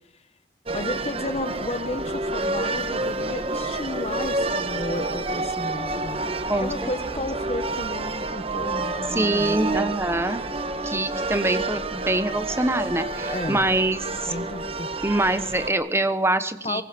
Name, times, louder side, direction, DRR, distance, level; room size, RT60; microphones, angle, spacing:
voice 1, 0.7-6.3 6.6-9.9 13.3-13.7 14.3-14.9 16.6-16.8, left 1 dB, 35° left, 10 dB, 1.4 m, -33 dB
sound 1, 0.7-15.7, right 2 dB, 30° right, 1.2 m, -29 dB
voice 2, 9.1-10.4 10.8-14.3 15.0-16.8, right 1 dB, 15° right, 11 dB, 1.1 m, -24 dB
22.5 x 19.5 x 6.1 m, 0.85 s
head